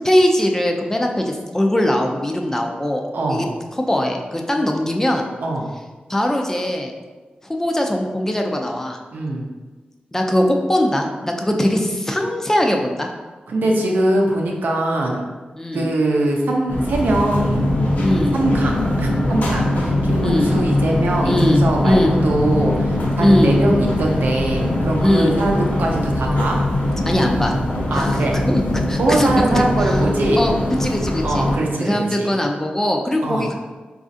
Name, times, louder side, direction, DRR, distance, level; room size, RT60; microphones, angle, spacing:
voice 1, 0.0-3.5 3.8-5.3 6.1-6.9 7.5-9.0 10.1-13.1 15.6-15.9 18.0-18.4 20.2-20.5 21.2-22.1 23.2-23.5 25.0-25.4 27.0-27.6 27.9-28.2 28.5-29.3 29.5-29.9 30.4-30.5 30.8-31.5 31.8-33.5, left 1 dB, 15° left, 2 dB, 0.3 m, -20 dB
voice 2, 3.1-3.5 5.4-5.7 9.1-9.5 13.5-15.2 15.7-17.7 18.3-26.6 27.9-28.5 29.0-30.4 31.2-32.3 33.2-33.5, right 1 dB, 90° right, 0 dB, 0.5 m, -21 dB
sound 1, 16.7-31.6, left 1 dB, 65° left, 0.7 m, -21 dB
4.0 x 2.4 x 2.6 m, 1.3 s
wide cardioid pair, 110°, 3 cm